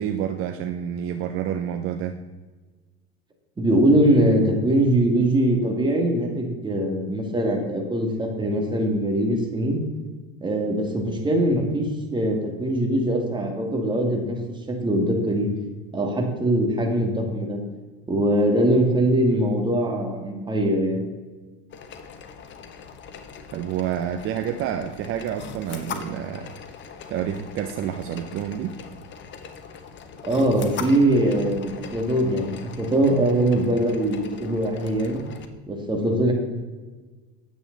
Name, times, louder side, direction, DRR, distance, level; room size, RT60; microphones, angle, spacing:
voice 1, 0.0-2.2 23.5-26.5 27.1-28.8, right 9 dB, 45° right, 7 dB, 0.7 m, -28 dB
voice 2, 3.6-9.8 10.4-14.4 14.7-15.5 15.9-17.6 18.1-21.1 30.2-32.5 32.8-35.2 35.7-36.3, right 1 dB, 15° right, 2 dB, 2.2 m, -22 dB
sound 1, 21.7-35.5, left 6 dB, 40° left, 1.1 m, -40 dB
9.5 x 8.0 x 4.0 m, 1.3 s
supercardioid pair, 105°, 29 cm